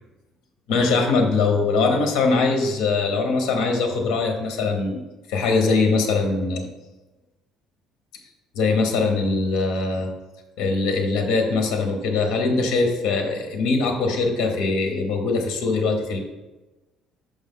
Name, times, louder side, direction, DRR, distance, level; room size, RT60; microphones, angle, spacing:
voice 1, 0.7-5.0 5.3-6.7 8.5-10.1 10.6-16.2, left 3 dB, 80° left, 4 dB, 1.0 m, -22 dB
6.0 x 5.1 x 3.7 m, 1.1 s
cardioid pair, 165°, 0 cm